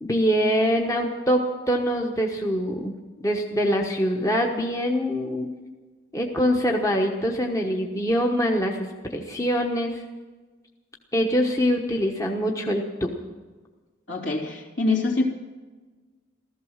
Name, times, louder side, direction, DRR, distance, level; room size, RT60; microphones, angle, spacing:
voice 1, 0.0-2.9 3.2-5.5 6.1-10.0 11.1-13.1, equal, 15° left, 1 dB, 1.1 m, -24 dB
voice 2, 14.1-15.3, left 3 dB, 65° left, 2 dB, 3.0 m, -24 dB
15.0 x 14.5 x 6.5 m, 1.3 s
head